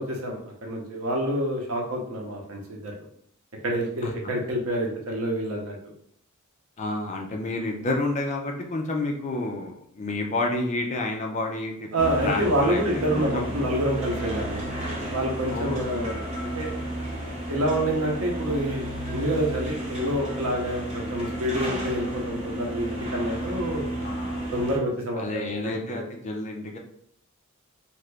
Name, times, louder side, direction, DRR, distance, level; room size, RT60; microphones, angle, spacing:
voice 1, 0.0-2.9 3.6-5.8 11.9-14.7 15.1-16.7 17.5-23.9 24.5-25.5 25.9-26.0, right 1 dB, 75° right, 0 dB, 0.7 m, -27 dB
voice 2, 6.8-12.8 13.1-13.6 15.5-16.0 24.0-24.5 25.2-26.8, left 2 dB, 35° left, 1 dB, 0.4 m, -30 dB
sound 1, 12.0-24.8, right 1 dB, 30° right, 0.9 m, -32 dB
2.8 x 2.5 x 3.3 m, 0.67 s
head